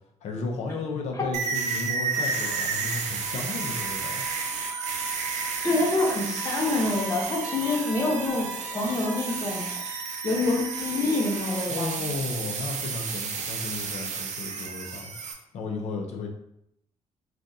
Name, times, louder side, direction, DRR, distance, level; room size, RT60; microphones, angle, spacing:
voice 1, 0.2-4.2 11.7-15.1 15.5-16.3, left 3 dB, 70° left, 2 dB, 0.6 m, -34 dB
sound 1, 1.3-15.3, right 5 dB, 75° right, 0.5 m, -32 dB
sound 2, 1.5-12.2, right 1 dB, 30° right, 0.6 m, -41 dB
voice 2, 5.6-12.1, left 2 dB, 25° left, -2 dB, 0.8 m, -27 dB
3.5 x 2.5 x 2.7 m, 0.76 s
cardioid pair, 130°, 12 cm